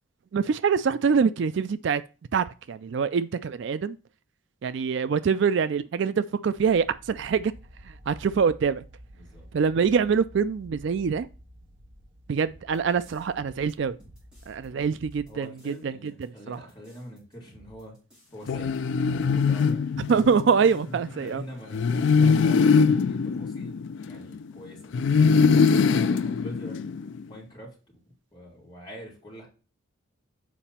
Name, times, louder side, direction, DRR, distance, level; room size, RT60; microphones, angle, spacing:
voice 1, 0.3-2.0 2.3-4.0 4.6-7.5 8.1-8.8 9.5-11.3 12.3-14.0 14.5-16.6 20.1-21.4, right 6 dB, 55° right, 0.3 m, -25 dB
sound 1, 6.6-15.3, equal, 25° right, 1.6 m, -50 dB
voice 2, 9.1-9.4 15.3-17.9 18.3-18.7 19.1-19.9 20.7-25.4 25.9-26.9 27.3-27.7 28.3-29.5, equal, 20° left, 3.3 m, -44 dB
sound 2, 12.4-14.7 14.9-15.8 16.0-19.7 20.0-21.0 21.3-21.4 21.6-22.2, equal, 5° right, 2.5 m, -55 dB
sound 3, 18.5-20.6 21.7-24.4 24.9-27.2, left 5 dB, 60° left, 0.3 m, -22 dB
7.3 x 4.9 x 4.3 m
head